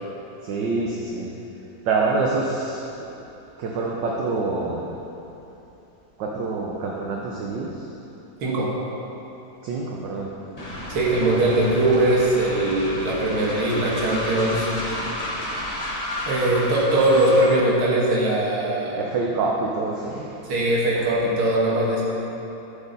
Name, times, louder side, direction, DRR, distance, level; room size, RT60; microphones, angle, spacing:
voice 1, 0.4-1.3 1.8-3.1 3.6-5.0 6.2-7.8 9.6-10.3 18.9-20.3, right 3 dB, 65° right, -2 dB, 1.4 m, -26 dB
Train, 10.6-17.6, left 1 dB, 20° left, 1.1 m, -31 dB
voice 2, 10.9-14.7 16.3-19.0 20.5-22.0, right 1 dB, 80° right, -5 dB, 2.4 m, -21 dB
10.5 x 7.8 x 4.0 m, 3.0 s
omnidirectional pair, 2.3 m